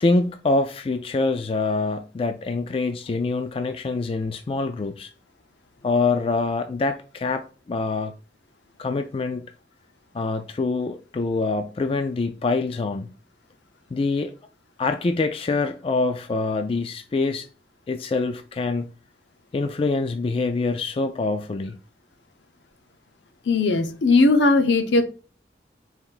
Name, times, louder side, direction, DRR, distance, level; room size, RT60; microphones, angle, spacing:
voice 1, 0.0-5.1 5.8-8.1 8.8-9.5 10.1-13.1 13.9-14.3 14.8-17.5 17.9-18.9 19.5-21.8, left 3 dB, 30° left, 0.3 m, -25 dB
voice 2, 23.5-25.0, left 3 dB, 75° left, 0.7 m, -18 dB
4.4 x 2.6 x 3.8 m
head